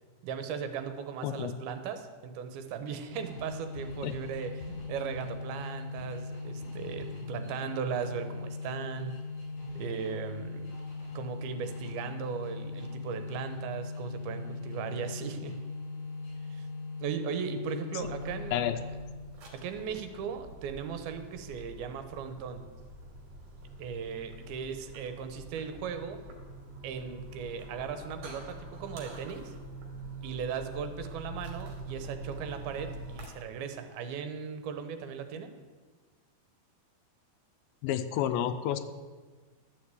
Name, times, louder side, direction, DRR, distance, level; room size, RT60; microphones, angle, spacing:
voice 1, 0.2-9.1 9.7-10.7 11.1-15.5 16.5-16.7 17.0-18.6 19.6-22.6 23.8-26.2 26.8-29.6 30.2-35.5, right 6 dB, 85° right, 8 dB, 2.9 m, -37 dB
sound 1, 3.1-19.2, left 3 dB, 60° left, 4.8 m, -40 dB
sound 2, 18.0-33.3, right 2 dB, 60° right, 3.9 m, -45 dB
voice 2, 37.8-38.8, left 11 dB, 85° left, 10 dB, 2.4 m, -30 dB
12.0 x 6.6 x 8.2 m, 1.4 s
omnidirectional pair, 4.3 m